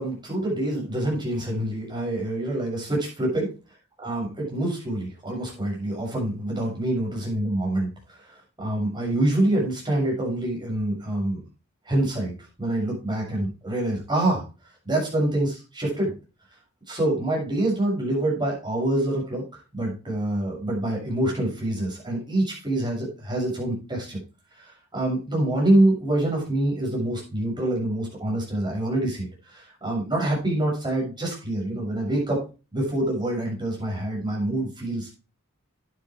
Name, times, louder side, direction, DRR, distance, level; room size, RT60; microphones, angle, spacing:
voice 1, 0.0-3.5 4.0-11.4 11.9-12.3 12.6-14.4 14.8-16.1 16.9-24.2 24.6-32.4 32.7-35.1, right 1 dB, 20° right, -2 dB, 7.3 m, -26 dB
12.0 x 9.5 x 3.3 m, 0.31 s
head